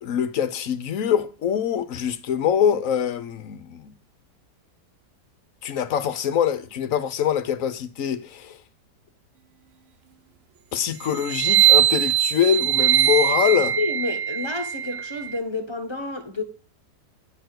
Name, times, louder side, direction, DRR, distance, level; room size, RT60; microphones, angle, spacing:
voice 1, 0.0-3.9 5.6-8.6 10.7-13.8, left 9 dB, 55° left, 1.1 m, -24 dB
sound 1, 11.2-15.3, right 12 dB, 55° right, 0.7 m, -21 dB
voice 2, 13.8-16.4, left 3 dB, 15° left, 1.2 m, -30 dB
10.5 x 4.6 x 7.9 m
omnidirectional pair, 1.9 m